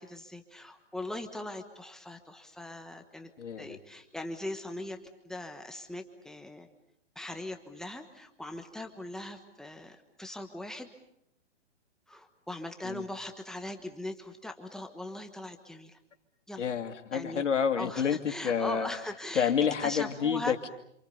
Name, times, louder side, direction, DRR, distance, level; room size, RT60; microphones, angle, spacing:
voice 1, 0.0-3.3 3.6-5.0 5.2-6.7 7.1-10.9 12.1-16.0 16.5-16.7 17.1-17.4 17.8-19.5 19.8-20.6, left 1 dB, ahead, 5 dB, 1.3 m, -40 dB
voice 2, 3.4-3.8 12.8-13.0 16.6-18.9 19.3-20.7, left 7 dB, 85° left, 6 dB, 2.9 m, -29 dB
27.5 x 26.5 x 6.9 m, 0.74 s
hypercardioid pair, 155°, 35 cm